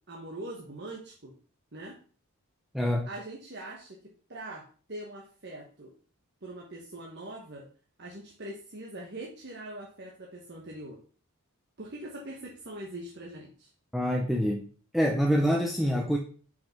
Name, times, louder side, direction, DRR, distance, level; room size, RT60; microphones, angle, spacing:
voice 1, 0.1-1.3 1.7-1.9 3.1-4.0 4.3-5.9 6.4-7.7 8.0-11.0 11.8-13.7, right 1 dB, 50° right, -1 dB, 1.2 m, -42 dB
voice 2, 2.7-3.1 13.9-14.6 14.9-16.2, equal, ahead, 1 dB, 0.6 m, -26 dB
5.6 x 5.3 x 5.9 m, 0.42 s
head